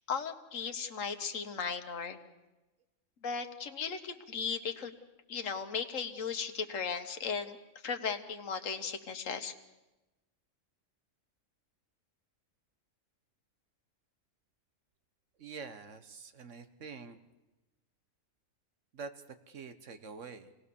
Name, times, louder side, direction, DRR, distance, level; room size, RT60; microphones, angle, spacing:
voice 1, 0.1-2.2 3.2-4.9 5.3-7.6 7.8-9.5, left 6 dB, 70° left, 7 dB, 1.6 m, -36 dB
voice 2, 15.4-17.2 18.9-20.5, right 5 dB, 65° right, 9 dB, 1.4 m, -46 dB
26.5 x 18.5 x 6.9 m, 1.1 s
omnidirectional pair, 1.4 m